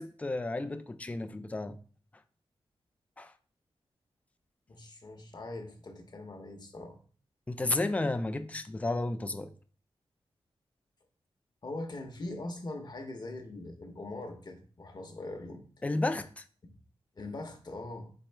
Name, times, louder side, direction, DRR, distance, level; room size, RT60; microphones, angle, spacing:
voice 1, 0.0-1.8 3.2-3.3 7.5-9.5 15.8-16.4, left 2 dB, 15° left, 0.4 m, -32 dB
voice 2, 4.7-7.0 11.6-15.6 17.2-18.1, left 2 dB, 45° left, 0.8 m, -41 dB
4.3 x 3.5 x 3.3 m
wide cardioid pair, 85°, 10 cm